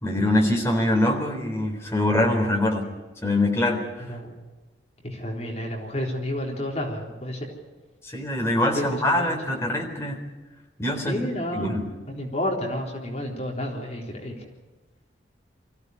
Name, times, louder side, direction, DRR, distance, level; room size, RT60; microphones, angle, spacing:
voice 1, 0.0-2.8 3.2-4.1 8.0-10.2 10.8-11.3 11.5-11.9, left 1 dB, 15° left, 1 dB, 3.9 m, -24 dB
voice 2, 5.0-7.5 8.7-8.8 9.2-9.3 11.1-11.8 12.1-14.4, left 1 dB, 35° left, 0 dB, 3.8 m, -30 dB
24.5 x 15.5 x 9.6 m, 1.2 s
head